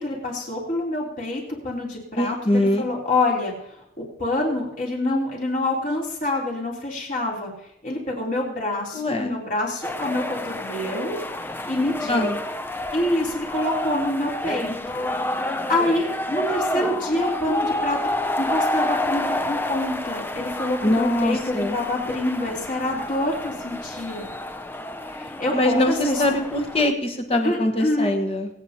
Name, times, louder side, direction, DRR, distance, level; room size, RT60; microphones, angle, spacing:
voice 1, 0.0-3.5 4.0-7.5 7.8-11.2 11.6-12.3 12.9-14.7 15.4-24.2 25.1-26.2 27.4-28.1, left 1 dB, 50° left, -3 dB, 3.4 m, -26 dB
voice 2, 2.2-2.9 8.9-9.3 12.1-12.4 20.8-21.8 25.5-28.5, left 1 dB, 35° left, 4 dB, 1.3 m, -22 dB
sound 1, 9.8-26.9, left 1 dB, 10° left, 0.5 m, -29 dB
25.0 x 8.6 x 2.9 m, 0.82 s
head